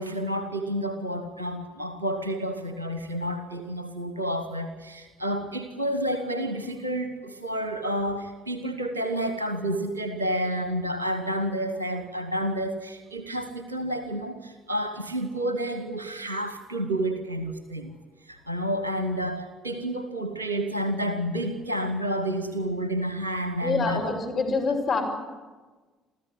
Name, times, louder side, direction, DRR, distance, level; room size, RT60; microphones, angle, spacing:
voice 1, 0.0-18.0 18.2-24.1, right 1 dB, 85° right, 8 dB, 1.1 m, -30 dB
voice 2, 23.6-25.0, left 4 dB, 45° left, 0 dB, 5.6 m, -26 dB
29.0 x 14.0 x 9.7 m, 1.3 s
figure-of-eight pair, 50°, 0 cm